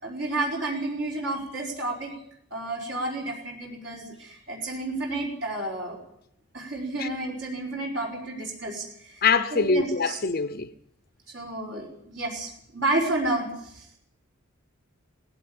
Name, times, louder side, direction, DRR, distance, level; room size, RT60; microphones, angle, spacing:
voice 1, 0.0-2.1 2.5-6.0 6.5-9.2 9.5-10.2 11.3-13.9, right 2 dB, 60° right, 4.9 m, -31 dB
voice 2, 9.2-10.7, left 4 dB, 45° left, 0.7 m, -23 dB
18.5 x 16.0 x 8.8 m
head